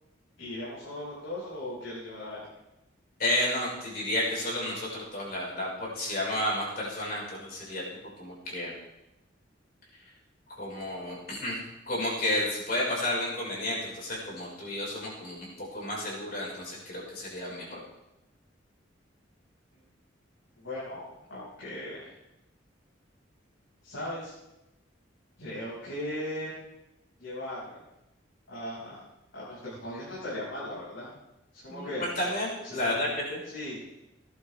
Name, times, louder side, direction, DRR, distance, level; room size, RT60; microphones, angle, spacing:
voice 1, 0.4-2.4 20.5-22.1 23.8-24.3 25.4-26.5 27.2-27.8 28.5-29.0 29.3-31.1 31.5-32.0 32.6-33.0 33.4-33.8, left 1 dB, 85° left, -10 dB, 6.4 m, -38 dB
voice 2, 3.2-7.8 8.2-8.7 10.6-11.6 11.9-17.8 31.7-33.4, left 1 dB, 50° left, -5 dB, 5.4 m, -31 dB
17.5 x 12.0 x 3.6 m, 0.93 s
head